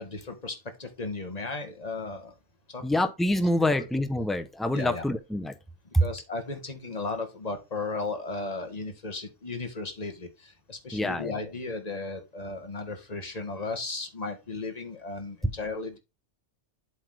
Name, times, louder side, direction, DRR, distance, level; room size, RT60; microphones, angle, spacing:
voice 1, 0.0-2.3 2.7-2.9 4.7-5.0 6.0-16.0, left 3 dB, 35° left, 1.5 m, -35 dB
voice 2, 2.8-5.5 5.9-6.0 10.9-11.4, left 1 dB, ahead, 0.5 m, -26 dB
7.8 x 4.2 x 4.7 m
omnidirectional pair, 1.3 m